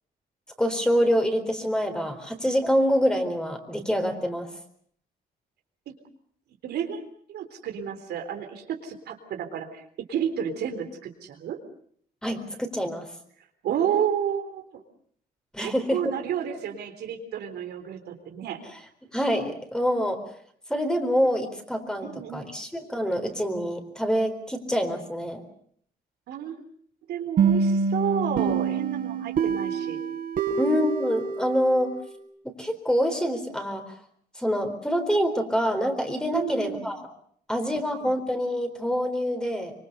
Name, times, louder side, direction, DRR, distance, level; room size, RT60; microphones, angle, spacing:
voice 1, 0.6-4.5 12.2-13.1 15.5-16.0 19.1-20.2 20.7-25.4 30.6-31.9 32.6-33.9 34.4-37.1 37.5-39.7, equal, 5° left, 6 dB, 4.2 m, -26 dB
voice 2, 6.6-7.0 7.3-9.8 10.1-11.6 13.6-14.8 15.6-18.6 22.0-22.5 26.3-26.6 27.1-30.0 36.3-36.9 38.0-38.1, right 8 dB, 85° right, 5 dB, 3.8 m, -31 dB
sound 1, 27.4-32.1, right 5 dB, 60° right, 4.8 m, -26 dB
25.0 x 24.0 x 6.8 m, 0.62 s
cardioid pair, 130°, 17 cm